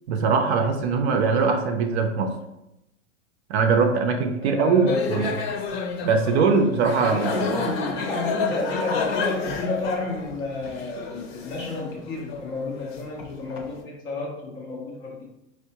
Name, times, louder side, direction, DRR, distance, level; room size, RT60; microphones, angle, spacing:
voice 1, 0.1-2.3 3.5-5.3 6.0-7.3, right 5 dB, 55° right, 5 dB, 0.5 m, -21 dB
voice 2, 4.4-5.5 6.9-15.2, left 2 dB, 10° left, -2 dB, 0.3 m, -30 dB
sound 1, 4.9-13.7, left 5 dB, 50° left, 0.6 m, -31 dB
4.5 x 2.1 x 2.7 m, 0.87 s
hypercardioid pair, 130°, 40 cm